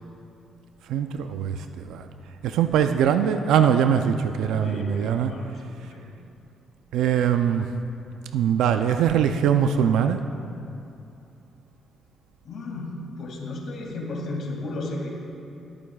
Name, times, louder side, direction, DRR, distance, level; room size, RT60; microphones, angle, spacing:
voice 1, 0.9-1.6 1.9-2.1 2.4-5.3 6.9-7.7 8.3-10.2, right 8 dB, 85° right, 7 dB, 0.4 m, -22 dB
voice 2, 4.6-5.6 5.9-6.1 12.4-15.1, left 2 dB, 65° left, -1 dB, 2.3 m, -34 dB
22.0 x 8.8 x 2.3 m, 2.8 s
cardioid pair, 90°, 0 cm